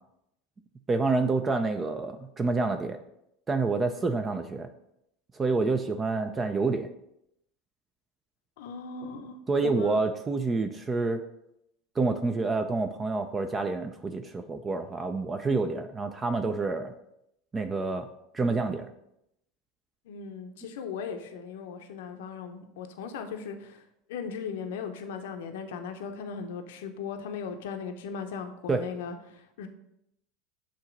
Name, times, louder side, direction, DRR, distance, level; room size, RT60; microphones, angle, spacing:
voice 1, 0.9-3.0 3.5-4.7 5.3-6.9 9.5-11.2 12.0-16.9 17.5-18.1 18.3-18.9 28.7-28.8, right 3 dB, 25° right, 7 dB, 0.5 m, -28 dB
voice 2, 8.6-10.0 20.0-29.7, left 6 dB, 80° left, 6 dB, 0.7 m, -38 dB
7.7 x 2.9 x 5.1 m, 0.80 s
supercardioid pair, 105°, 0 cm